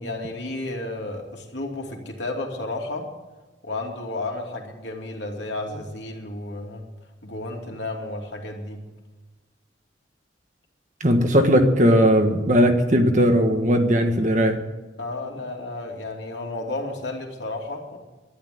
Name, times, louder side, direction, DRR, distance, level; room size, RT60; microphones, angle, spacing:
voice 1, 0.0-3.1 3.6-6.8 7.2-8.8 15.0-18.0, left 2 dB, 75° left, 1 dB, 2.9 m, -32 dB
voice 2, 11.0-14.6, equal, 40° right, 5 dB, 1.5 m, -18 dB
11.5 x 11.0 x 9.3 m, 1.2 s
head